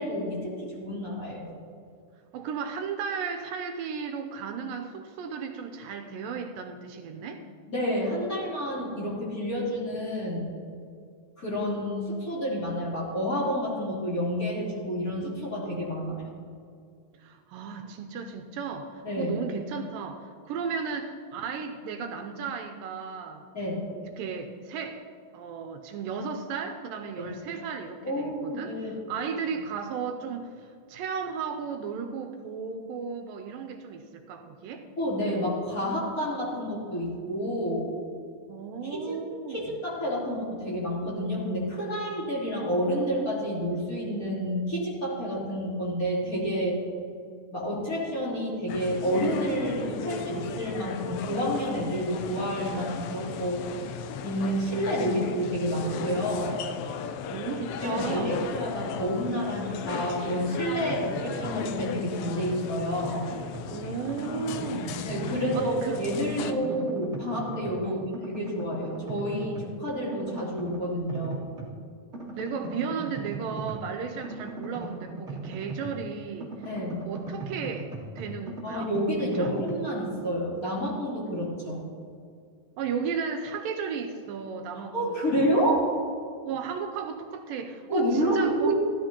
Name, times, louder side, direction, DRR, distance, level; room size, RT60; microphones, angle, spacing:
voice 1, 0.0-1.5 7.7-10.5 11.4-16.3 19.0-19.4 23.5-23.9 27.2-27.3 28.0-29.0 35.0-37.9 38.9-39.2 39.5-46.8 47.5-53.6 54.2-56.6 57.8-63.3 65.0-68.0 68.3-71.5 76.6-77.1 78.6-81.9 84.9-85.9 87.9-88.7, equal, 25° left, -8 dB, 3.4 m, -29 dB
voice 2, 2.3-7.4 17.2-23.5 23.9-25.0 25.3-34.8 38.5-39.6 55.1-55.2 57.3-58.5 63.6-65.0 65.5-66.0 66.4-66.9 67.8-68.1 72.3-76.7 77.0-78.9 79.3-79.5 82.8-85.3 86.5-88.7, right 6 dB, 80° right, 5 dB, 2.3 m, -35 dB
sound 1, 48.7-66.5, left 7 dB, 90° left, 2.4 m, -36 dB
sound 2, 60.6-61.6 62.0-63.7 64.1-65.8 66.1-67.9 68.1-69.7 70.1-71.7 72.1-76.1 76.4-79.7, right 3 dB, 25° right, 1.7 m, -39 dB
16.5 x 12.5 x 2.9 m, 2.2 s
omnidirectional pair, 4.1 m